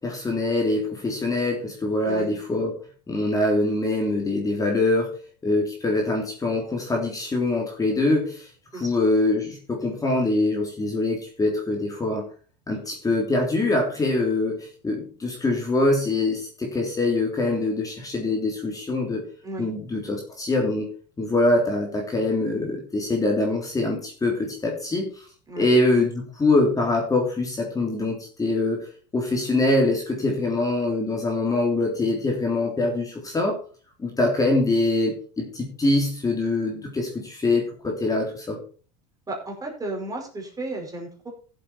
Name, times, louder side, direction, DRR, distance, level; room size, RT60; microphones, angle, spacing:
voice 1, 0.0-2.7 3.1-5.1 5.4-12.2 12.7-19.2 19.6-20.9 21.2-25.3 25.6-28.9 29.1-33.6 34.0-38.6, left 2 dB, 15° left, 0 dB, 3.4 m, -24 dB
voice 2, 39.3-41.3, right 2 dB, 15° right, 1 dB, 5.0 m, -33 dB
15.0 x 8.0 x 4.4 m, 0.39 s
supercardioid pair, 110°, 21 cm